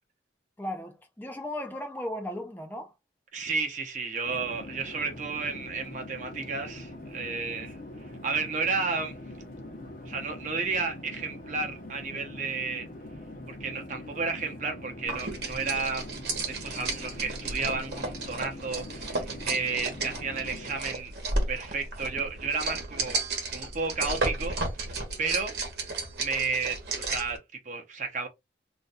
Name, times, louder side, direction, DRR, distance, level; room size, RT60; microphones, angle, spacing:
voice 1, 0.6-2.9, left 1 dB, 10° left, 0.4 m, -36 dB
voice 2, 3.3-7.8 8.2-9.2 10.1-12.9 13.5-16.1 16.5-21.1 21.5-23.2 23.5-24.6 24.8-25.5 26.2-28.3, right 4 dB, 40° right, 0.7 m, -32 dB
Conversation / Chatter / Fixed-wing aircraft airplane, 4.3-20.9, left 1 dB, 45° left, 0.7 m, -43 dB
sound 1, 15.1-27.4, right 3 dB, 65° right, 1.0 m, -33 dB
2.5 x 2.2 x 4.0 m
head